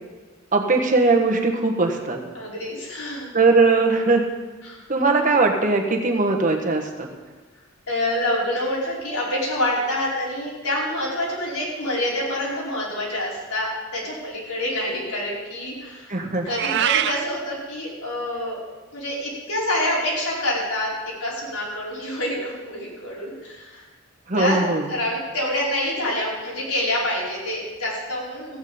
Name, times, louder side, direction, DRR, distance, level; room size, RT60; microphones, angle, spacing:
voice 1, 0.5-2.2 3.3-4.3 4.9-7.1 16.1-16.5 24.3-24.8, right 3 dB, 35° right, 3 dB, 1.4 m, -20 dB
voice 2, 2.3-3.3 4.6-4.8 7.9-16.2 16.4-18.6 18.9-20.9 21.2-23.9 24.3-24.6 24.9-28.6, left 1 dB, 85° left, -6 dB, 5.0 m, -27 dB
Meow, 16.5-17.2, right 11 dB, 50° right, 0.3 m, -23 dB
15.0 x 9.3 x 5.1 m, 1.3 s
head